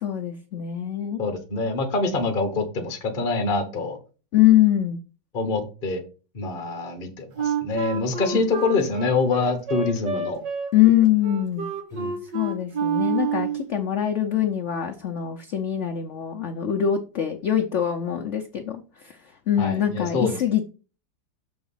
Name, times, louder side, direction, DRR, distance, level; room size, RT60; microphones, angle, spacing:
voice 1, 0.0-1.2 4.3-5.0 8.3-8.4 8.8-8.9 10.7-11.7 12.3-19.2 19.5-20.6, left 11 dB, 80° left, 4 dB, 0.6 m, -23 dB
voice 2, 1.2-4.0 5.3-6.0 6.3-10.4 11.9-12.1 19.6-20.4, left 3 dB, 35° left, 5 dB, 1.0 m, -25 dB
Wind instrument woodwind instrument, 7.4-13.7, right 5 dB, 65° right, 2.1 m, -28 dB
6.7 x 4.0 x 5.5 m, 0.35 s
omnidirectional pair, 2.1 m